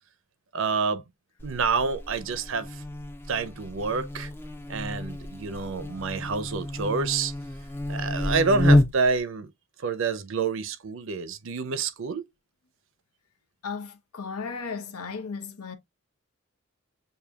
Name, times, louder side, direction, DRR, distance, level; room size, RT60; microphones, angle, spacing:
voice 1, 0.5-1.0 1.4-2.8 3.3-4.3 4.7-7.3 7.9-9.5 9.8-12.3, right 4 dB, 60° right, 0.5 m, -28 dB
Buzz, 1.4-9.2, left 1 dB, 10° left, 0.4 m, -28 dB
voice 2, 13.6-15.8, left 5 dB, 85° left, 0.8 m, -35 dB
6.6 x 2.7 x 2.2 m
head